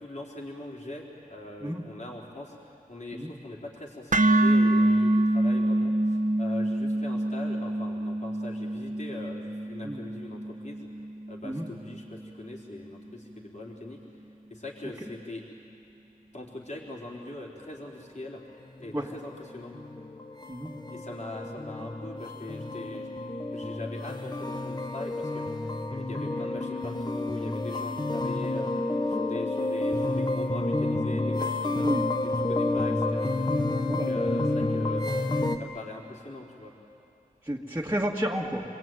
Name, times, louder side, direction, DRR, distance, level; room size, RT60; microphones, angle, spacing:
voice 1, 0.0-10.9 11.3-14.0 14.5-15.4 16.3-18.4 18.8-19.7 20.9-23.1 23.5-25.4 25.9-28.7 29.1-32.0 32.2-33.3 33.9-36.7, left 2 dB, 50° left, -3 dB, 4.1 m, -41 dB
sound 1, 4.1-12.2, right 1 dB, 55° right, 1.3 m, -26 dB
sound 2, 18.6-35.6, left 2 dB, 25° left, 1.2 m, -30 dB
voice 2, 31.8-32.1 33.9-34.1 35.4-35.6 37.5-38.6, equal, 15° right, -3 dB, 2.1 m, -31 dB
28.0 x 21.5 x 9.4 m, 2.8 s
wide cardioid pair, 65°, 15 cm